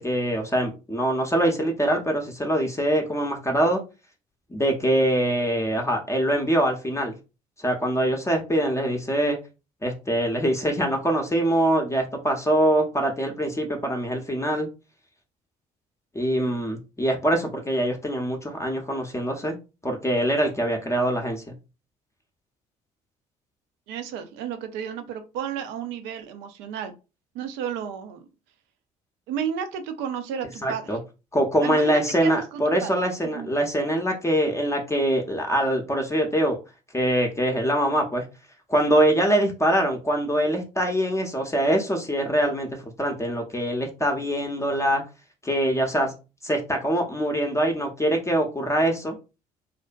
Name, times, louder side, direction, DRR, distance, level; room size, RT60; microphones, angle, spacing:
voice 1, 0.0-3.8 4.5-7.2 7.6-9.4 9.8-14.7 16.1-19.6 19.8-21.4 30.6-31.0 31.3-36.6 36.9-38.3 38.7-42.7 43.0-45.0 45.4-46.1 46.4-49.2, right 1 dB, 15° left, 2 dB, 0.6 m, -23 dB
voice 2, 23.9-26.9 27.3-28.2 29.3-31.0 31.6-33.0 33.3-33.5, right 8 dB, 70° right, 9 dB, 0.5 m, -32 dB
2.5 x 2.1 x 2.4 m, 0.30 s
hypercardioid pair, 55°, 19 cm